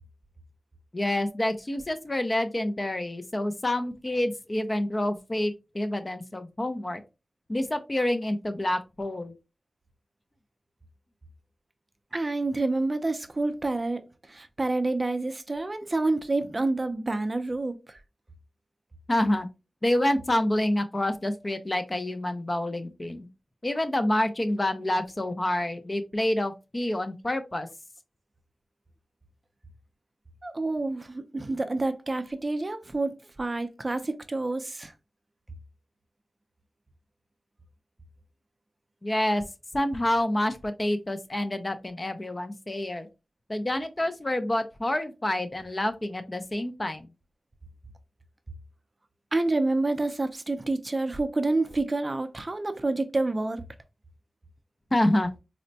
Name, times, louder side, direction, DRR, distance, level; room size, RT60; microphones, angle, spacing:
voice 1, 0.9-7.0 7.5-9.3 19.1-19.5 19.8-23.3 23.6-27.7 39.0-39.4 39.7-43.1 43.5-47.1 54.9-55.3, left 1 dB, 30° left, 0.4 m, -27 dB
voice 2, 12.1-18.0 30.4-34.9 49.3-53.6, right 2 dB, 35° right, 0.4 m, -28 dB
4.1 x 2.1 x 2.6 m
wide cardioid pair, 70°, 0 cm